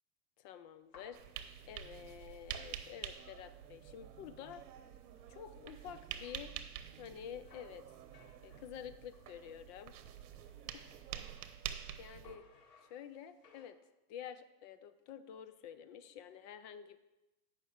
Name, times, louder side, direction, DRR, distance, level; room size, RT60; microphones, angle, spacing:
voice 1, 0.4-4.6 5.3-6.5 7.0-7.8 8.4-9.9 10.7-10.9 12.0-12.4 12.8-13.8 14.1-17.0, left 9 dB, 30° left, 11 dB, 0.4 m, -49 dB
sound 1, 0.7-3.3 3.7-3.8 4.1-9.3 9.9-12.0 12.2-13.7, left 4 dB, 90° left, 2.3 m, -65 dB
sound 2, 1.1-12.4, right 10 dB, 70° right, 1.0 m, -48 dB
8.8 x 5.7 x 6.4 m, 1.0 s
hypercardioid pair, 130°, 47 cm